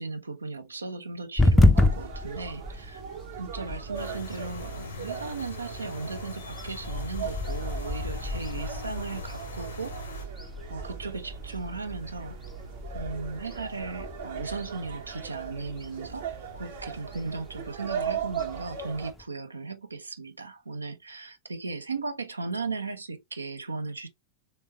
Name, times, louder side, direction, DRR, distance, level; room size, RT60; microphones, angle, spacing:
voice 1, 0.0-3.0 3.4-10.2 10.7-12.4 12.9-24.1, right 3 dB, 80° right, 0.6 m, -36 dB
sound 1, 1.4-19.2, left 2 dB, 10° left, 0.5 m, -31 dB
sound 2, 1.7-19.1, right 8 dB, 60° right, 1.0 m, -39 dB
sound 3, 3.9-10.3, left 3 dB, 70° left, 1.2 m, -42 dB
3.5 x 3.3 x 3.2 m
figure-of-eight pair, 90°, 0 cm